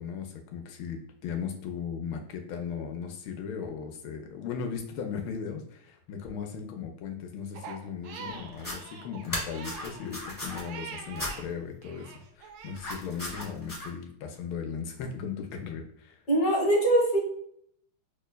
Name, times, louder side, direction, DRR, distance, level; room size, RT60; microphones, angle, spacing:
voice 1, 0.0-16.2, left 6 dB, 75° left, 4 dB, 1.4 m, -37 dB
Crying sobbing, 7.5-11.5 11.8-12.8, right 5 dB, 80° right, 1.4 m, -44 dB
sound 1, 8.5-8.8 9.2-10.6 11.2-11.3 12.7-13.9, left 1 dB, 20° left, 0.6 m, -36 dB
voice 2, 16.3-17.2, right 1 dB, 50° left, -4 dB, 1.6 m, -22 dB
6.2 x 2.1 x 2.2 m, 0.66 s
omnidirectional pair, 2.3 m